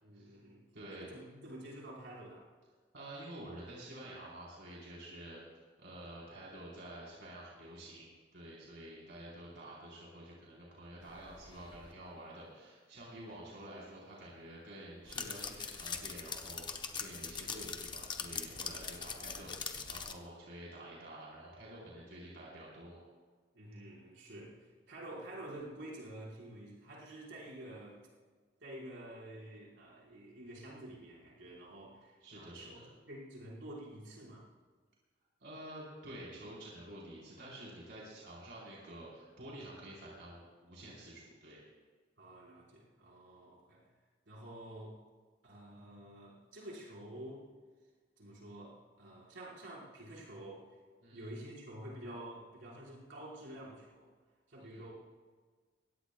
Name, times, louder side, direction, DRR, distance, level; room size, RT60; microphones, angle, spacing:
voice 1, 0.0-0.6 0.9-2.5 23.5-28.0 28.6-32.8 33.1-34.5 42.2-43.9 44.3-45.0 45.4-47.5 48.2-50.8 51.1-54.1 54.5-54.9, right 1 dB, 85° right, -5 dB, 4.9 m, -49 dB
voice 2, 0.7-1.1 2.9-5.4 5.8-23.0 32.2-32.9 35.4-41.6 51.0-51.3 54.6-54.8, right 1 dB, 70° right, -5 dB, 4.2 m, -49 dB
sound 1, 11.1-11.9 15.1-20.1, left 5 dB, 25° left, 0.8 m, -42 dB
22.0 x 17.5 x 2.3 m, 1.5 s
head